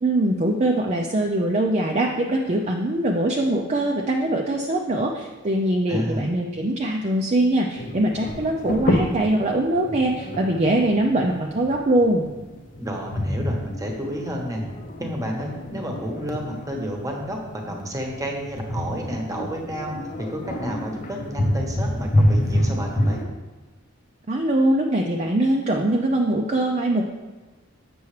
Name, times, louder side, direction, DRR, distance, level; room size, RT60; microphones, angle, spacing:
voice 1, 0.0-12.3 24.3-27.1, right 1 dB, 30° right, 1 dB, 0.5 m, -22 dB
voice 2, 5.9-6.3 12.8-14.6 15.0-19.9 20.2-23.2, equal, 15° right, 1 dB, 1.1 m, -30 dB
sound 1, 7.7-23.2, left 1 dB, 40° left, 0.8 m, -28 dB
7.0 x 6.9 x 3.2 m, 1.3 s
head